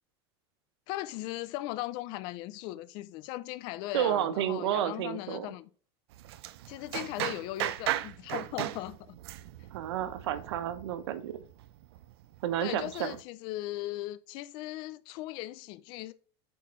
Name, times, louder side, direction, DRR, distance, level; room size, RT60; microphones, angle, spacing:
voice 1, 0.9-5.7 6.7-9.2 12.6-16.1, left 16 dB, 35° left, 0.3 m, -38 dB
voice 2, 3.9-5.5 9.7-11.4 12.4-13.2, right 11 dB, 90° right, 1.0 m, -31 dB
sound 1, 6.1-13.2, right 14 dB, 70° right, 0.5 m, -37 dB
8.3 x 4.2 x 3.1 m
supercardioid pair, 175°, 14 cm